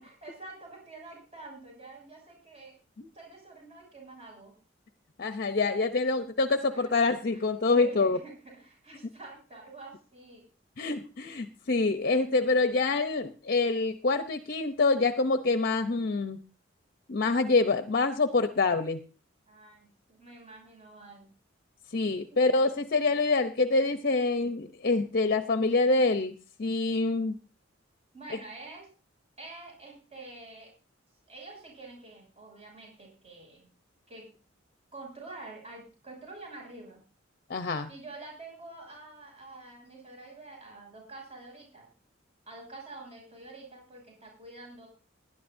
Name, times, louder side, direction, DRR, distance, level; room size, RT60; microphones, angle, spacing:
voice 1, 0.0-2.8 3.1-4.5 6.5-6.9 7.3-7.4 7.7-10.4 19.5-21.3 22.3-22.6 28.1-28.9 29.4-30.7 31.3-33.7 34.1-34.3 34.9-37.0 37.9-41.9 42.5-44.9, right 3 dB, 35° right, 0 dB, 6.4 m, -47 dB
voice 2, 5.2-8.2 10.8-16.4 17.1-19.0 21.9-27.4 37.5-37.9, left 3 dB, 50° left, 9 dB, 0.7 m, -26 dB
20.5 x 11.0 x 2.6 m, 0.35 s
head